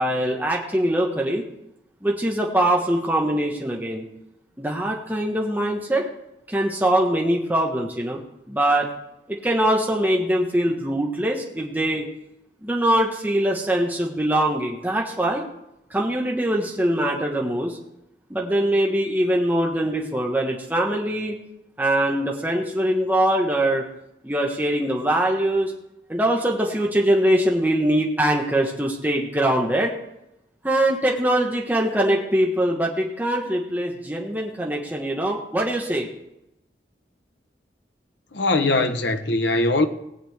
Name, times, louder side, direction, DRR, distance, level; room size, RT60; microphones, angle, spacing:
voice 1, 0.0-1.4 2.0-4.0 4.6-6.1 6.5-8.2 8.5-8.9 9.3-12.0 12.6-15.4 15.9-17.8 18.3-21.4 21.8-23.8 24.2-25.7 26.1-29.9 30.6-36.1, right 1 dB, 10° right, 1.2 m, -22 dB
voice 2, 38.3-39.9, left 2 dB, 80° left, 1.1 m, -21 dB
18.5 x 8.6 x 3.5 m
head